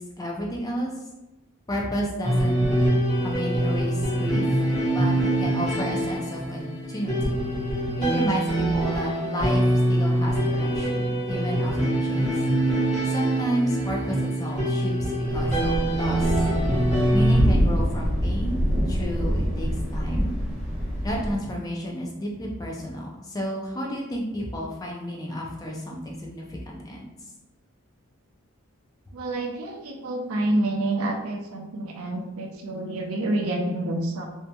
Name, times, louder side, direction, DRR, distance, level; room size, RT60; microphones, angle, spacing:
voice 1, 0.2-0.9 1.7-2.6 3.2-4.4 4.9-7.4 8.0-12.3 13.1-16.3 17.1-18.6 18.9-20.3 21.0-27.1, equal, 15° left, -2 dB, 0.4 m, -31 dB
sound 1, 2.2-17.4, right 1 dB, 30° left, 1.1 m, -24 dB
Thunder, 15.3-21.4, equal, 10° right, 1.2 m, -25 dB
voice 2, 29.1-34.3, right 1 dB, 90° right, 2 dB, 0.5 m, -28 dB
2.7 x 2.5 x 2.2 m, 0.98 s
head